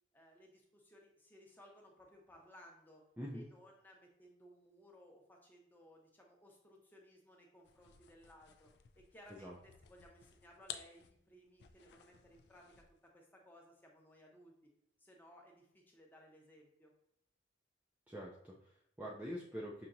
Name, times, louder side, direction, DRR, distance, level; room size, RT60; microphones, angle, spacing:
voice 1, 0.1-3.0 3.3-8.7 9.0-12.6 13.1-14.7 15.0-16.9, equal, 10° left, 0 dB, 0.7 m, -61 dB
voice 2, 3.2-3.5 9.4-9.6 18.1-19.9, equal, 10° right, -5 dB, 0.4 m, -45 dB
sound 1, 7.6-13.1, left 9 dB, 65° left, 0.3 m, -55 dB
5.7 x 2.8 x 2.6 m, 0.74 s
head